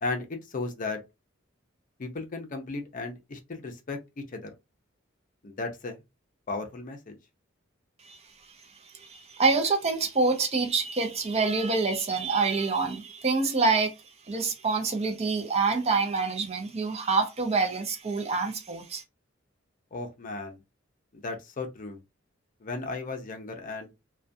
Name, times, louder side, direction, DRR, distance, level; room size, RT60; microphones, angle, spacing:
voice 1, 0.0-1.0 2.0-4.0 4.3-4.5 5.4-6.0 6.5-7.2 19.9-20.6 21.1-22.0 22.6-23.9, left 3 dB, 40° left, 0.5 m, -35 dB
voice 2, 9.0-13.9 14.3-19.0, right 4 dB, 30° right, 0.5 m, -26 dB
2.3 x 2.2 x 2.5 m
head